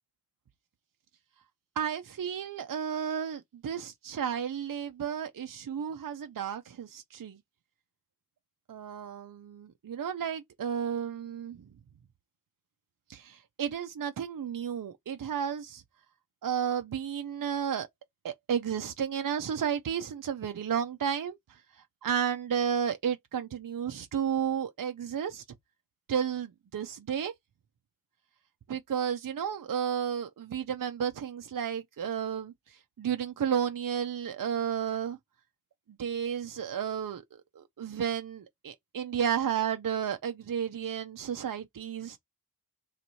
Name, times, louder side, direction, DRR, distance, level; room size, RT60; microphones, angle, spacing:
voice 1, 1.8-7.4 8.7-11.7 13.1-15.8 16.4-17.9 18.2-21.6 22.0-25.4 26.1-27.3 28.7-35.2 36.0-42.2, right 8 dB, 65° right, 0.6 m, -32 dB
3.2 x 3.0 x 4.0 m
wide cardioid pair, 75°, 36 cm